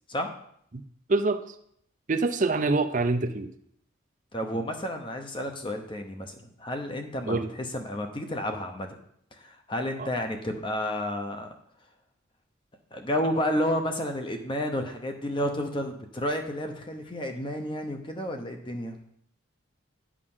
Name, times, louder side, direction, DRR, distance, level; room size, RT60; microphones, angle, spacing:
voice 1, 1.1-1.5 2.1-3.5 7.3-7.5 10.0-10.1, right 3 dB, 40° right, 8 dB, 0.5 m, -25 dB
voice 2, 4.3-8.9 9.3-11.5 12.9-19.0, equal, 25° left, 5 dB, 0.8 m, -31 dB
9.9 x 4.9 x 5.5 m, 0.69 s
head